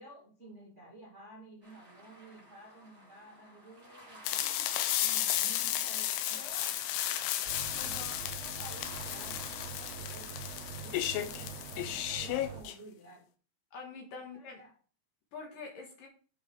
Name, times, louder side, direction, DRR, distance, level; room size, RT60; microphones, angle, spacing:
voice 1, 0.0-4.4 5.0-6.8 7.8-13.2 14.3-14.7, right 1 dB, 65° right, -3 dB, 0.7 m, -53 dB
sound 1, 1.6-12.6, equal, 20° right, 2.2 m, -55 dB
sound 2, 4.3-12.8, left 12 dB, 90° left, 3.2 m, -34 dB
sound 3, 7.5-12.6, right 7 dB, 90° right, 3.2 m, -45 dB
voice 2, 7.7-8.2 13.7-14.6 15.3-16.1, left 4 dB, 65° left, 1 dB, 2.4 m, -45 dB
8.3 x 4.9 x 4.5 m, 0.39 s
omnidirectional pair, 5.2 m